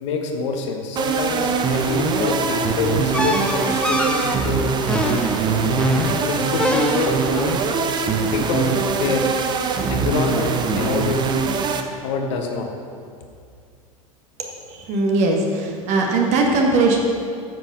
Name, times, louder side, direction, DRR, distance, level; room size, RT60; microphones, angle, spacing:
voice 1, 0.0-4.6 6.1-7.6 8.3-9.3 9.9-11.2 12.0-12.7, left 4 dB, 55° left, 3 dB, 1.3 m, -25 dB
sound 1, 1.0-11.8, right 5 dB, 25° right, 0.7 m, -22 dB
sound 2, 3.1-7.4, left 1 dB, 5° left, 0.9 m, -25 dB
voice 2, 14.7-17.0, right 3 dB, 40° right, 1 dB, 1.6 m, -19 dB
9.3 x 7.5 x 5.6 m, 2.3 s
figure-of-eight pair, 85°, 19 cm